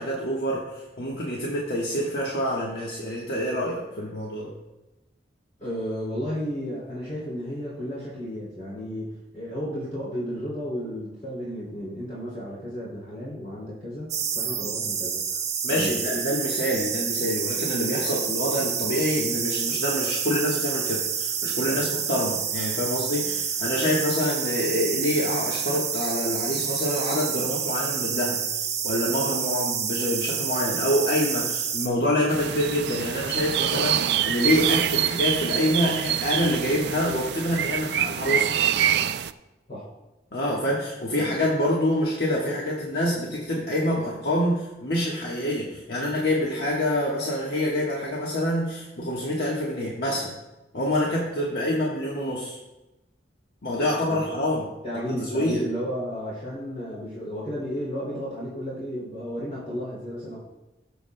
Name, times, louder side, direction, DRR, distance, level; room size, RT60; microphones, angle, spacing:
voice 1, 0.0-4.5 15.6-28.4 28.8-38.5 40.3-50.3 50.7-52.6 53.6-55.7, left 1 dB, 60° left, -4 dB, 1.3 m, -26 dB
voice 2, 5.6-14.1 14.3-15.4 15.7-16.3 18.0-18.3 21.7-21.8 23.2-23.3 39.7-39.9 54.0-54.2 54.8-60.4, equal, 40° left, -8 dB, 2.7 m, -33 dB
sound 1, 14.1-31.9, right 7 dB, 40° right, 1.3 m, -28 dB
sound 2, 32.3-39.3, right 10 dB, 65° right, 0.3 m, -25 dB
18.0 x 7.0 x 2.2 m, 1.0 s
head